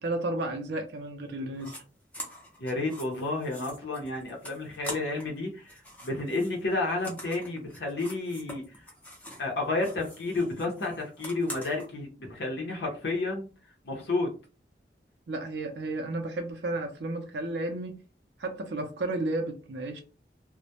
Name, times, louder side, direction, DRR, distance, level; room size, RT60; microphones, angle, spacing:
voice 1, 0.0-1.8 15.3-17.9 18.4-20.0, right 2 dB, 75° right, 0.5 m, -32 dB
sound 1, 1.6-1.8 2.1-5.4 5.6-9.5 9.8-11.9, equal, 10° left, 0.5 m, -44 dB
voice 2, 2.6-8.6 9.4-13.5 13.8-14.3, left 2 dB, 70° left, 0.6 m, -31 dB
2.1 x 2.0 x 2.7 m
head